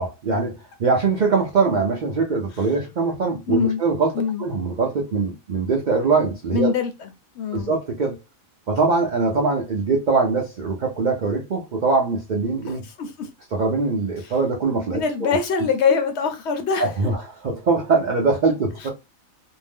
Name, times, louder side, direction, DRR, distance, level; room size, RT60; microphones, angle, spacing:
voice 1, 0.0-4.1 4.4-6.7 7.5-8.2 8.7-12.8 13.5-15.4 16.8-18.9, right 4 dB, 85° right, 0.4 m, -22 dB
voice 2, 3.5-3.8 4.1-4.4 6.5-7.1 7.3-7.7 12.7-13.3 14.2-14.3 14.9-16.9 18.8-18.9, left 6 dB, 65° left, 0.7 m, -24 dB
2.6 x 2.0 x 3.3 m
omnidirectional pair, 1.4 m